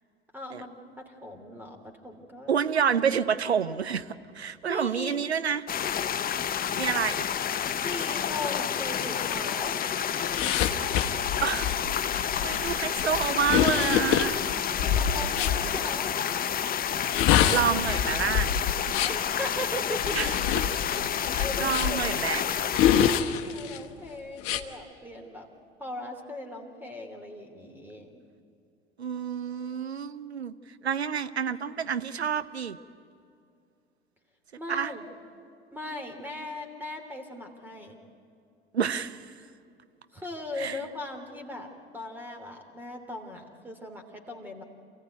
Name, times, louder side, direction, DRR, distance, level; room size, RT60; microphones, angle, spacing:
voice 1, 0.3-2.5 4.6-5.2 7.8-9.9 14.8-16.2 19.0-20.3 21.4-25.5 25.8-28.2 34.6-35.0 35.7-38.0 40.1-41.7 41.9-44.6, left 1 dB, 5° right, 4 dB, 3.0 m, -39 dB
voice 2, 2.5-5.6 6.8-7.3 11.4-11.8 12.1-14.4 17.5-18.5 20.1-20.3 21.3-22.4 29.0-30.5 30.8-32.8 34.7-34.9 38.7-39.3 40.6-40.8, right 7 dB, 85° right, 13 dB, 0.7 m, -28 dB
sound 1, 5.7-23.2, left 9 dB, 30° left, 0.9 m, -29 dB
sound 2, 10.3-15.6 16.9-19.3 20.0-22.1 22.7-23.8 24.4-24.6, left 9 dB, 45° left, 1.2 m, -26 dB
27.0 x 15.5 x 9.4 m, 2.5 s
figure-of-eight pair, 70°, 31 cm